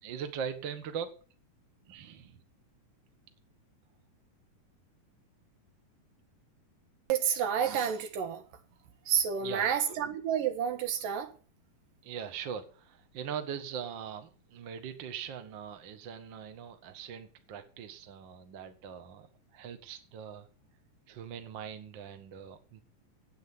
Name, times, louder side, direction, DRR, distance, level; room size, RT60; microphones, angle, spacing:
voice 1, 0.0-1.1 1.8-2.4 9.4-9.9 12.0-20.5 21.1-22.8, right 7 dB, 45° right, 1.6 m, -41 dB
voice 2, 7.1-8.4 9.1-11.3, right 8 dB, 90° right, 3.1 m, -29 dB
9.9 x 9.0 x 7.0 m
omnidirectional pair, 3.8 m